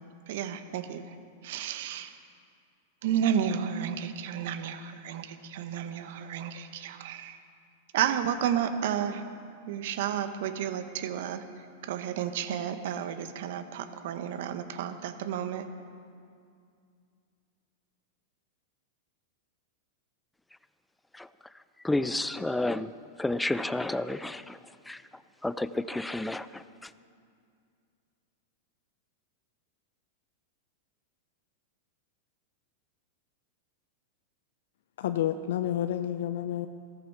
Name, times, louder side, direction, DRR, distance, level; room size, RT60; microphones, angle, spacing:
voice 1, 0.3-1.1 1.4-2.2 3.0-7.4 7.9-9.3 9.7-11.4 11.8-15.6, right 9 dB, 65° right, 10 dB, 1.1 m, -32 dB
voice 2, 21.8-22.9 23.2-24.6 24.9-25.0 25.4-26.9, left 2 dB, 5° left, 15 dB, 0.4 m, -31 dB
voice 3, 35.0-36.7, left 11 dB, 70° left, 10 dB, 0.5 m, -29 dB
14.5 x 14.0 x 4.7 m, 2.3 s
hypercardioid pair, 110°, 0 cm